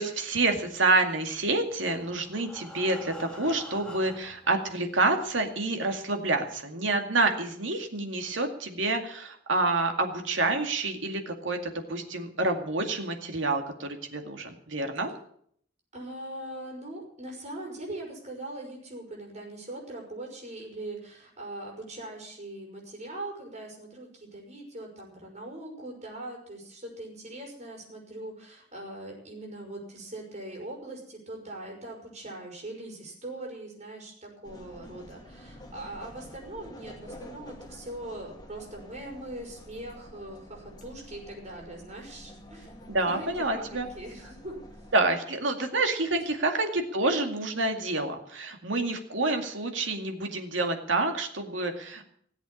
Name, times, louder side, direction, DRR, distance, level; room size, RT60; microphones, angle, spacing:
voice 1, 0.0-15.1 42.9-43.9 44.9-52.0, right 2 dB, 90° right, 4 dB, 2.2 m, -28 dB
Breathing, 1.6-4.5 5.3-5.4 5.7-5.8 6.3-6.4, left 1 dB, 5° left, 2.5 m, -46 dB
voice 2, 15.9-42.7 43.1-44.8, right 1 dB, 40° right, 0 dB, 6.0 m, -41 dB
sound 1, 34.4-45.0, equal, 20° left, 2.4 m, -48 dB
17.5 x 8.1 x 8.4 m, 0.64 s
head